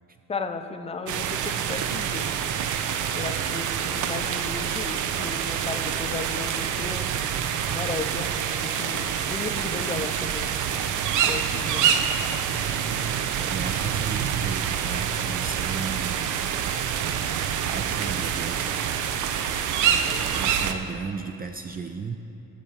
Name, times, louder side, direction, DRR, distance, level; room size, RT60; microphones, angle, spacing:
voice 1, 0.3-2.3 3.1-7.1 7.7-8.3 8.6-10.5 11.3-11.9 20.0-20.2, left 4 dB, 20° left, 8 dB, 0.5 m, -35 dB
sound 1, 1.1-20.7, right 8 dB, 80° right, 0.5 m, -26 dB
voice 2, 13.4-16.3 17.7-18.7 19.9-22.2, right 5 dB, 30° right, 7 dB, 0.4 m, -35 dB
8.4 x 5.3 x 7.1 m, 2.9 s
cardioid pair, 90°, 30 cm